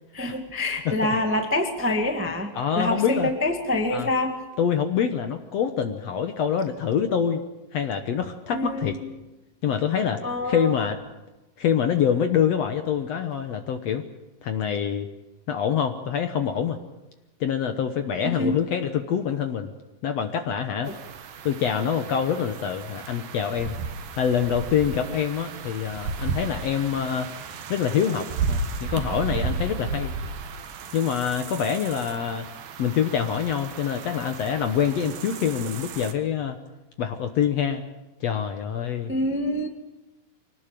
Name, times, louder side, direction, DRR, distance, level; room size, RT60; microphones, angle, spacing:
voice 1, 0.1-2.5 2.7-4.3 8.5-9.0 10.2-10.7 18.2-18.6 20.8-20.9 39.1-39.7, left 1 dB, 20° right, 4 dB, 0.3 m, -26 dB
voice 2, 0.8-1.1 2.5-3.3 3.9-4.1 4.6-7.4 7.7-9.0 9.6-11.0 11.6-14.0 14.4-15.1 15.5-16.8 17.4-19.7 20.0-20.9 21.4-23.8 24.1-27.3 27.7-30.1 30.9-32.5 32.8-36.6 37.0-37.8 38.2-39.1, left 8 dB, 70° left, 7 dB, 1.7 m, -25 dB
sound 1, 20.9-36.1, right 4 dB, 75° right, 3.2 m, -34 dB
25.0 x 18.5 x 7.6 m, 1.1 s
omnidirectional pair, 4.2 m